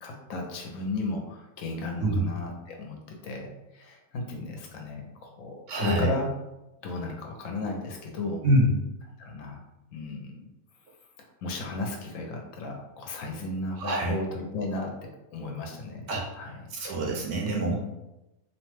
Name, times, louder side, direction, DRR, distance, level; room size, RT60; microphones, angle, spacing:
voice 1, 0.0-3.5 3.7-6.3 6.8-8.4 9.2-9.6 9.9-10.5 11.4-14.9 15.3-16.1 16.4-16.5, left 2 dB, 70° left, 2 dB, 0.9 m, -34 dB
voice 2, 5.7-6.1 8.4-8.7 13.8-14.1 16.1-16.2 16.7-17.8, right 1 dB, 70° right, -1 dB, 0.8 m, -25 dB
2.8 x 2.1 x 3.0 m, 0.96 s
omnidirectional pair, 1.5 m